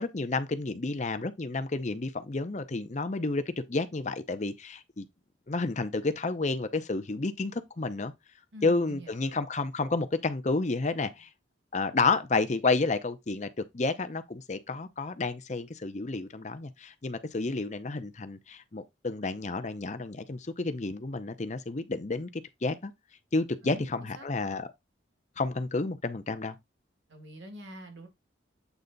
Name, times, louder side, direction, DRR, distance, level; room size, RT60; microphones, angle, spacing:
voice 1, 0.0-5.1 5.5-8.1 8.6-11.3 11.7-13.5 13.7-22.9 23.3-24.7 25.4-26.6, left 3 dB, 40° left, 0.6 m, -30 dB
voice 2, 8.5-9.1 23.6-24.3 27.1-28.1, right 1 dB, 75° right, 1.8 m, -45 dB
8.2 x 3.3 x 3.9 m
head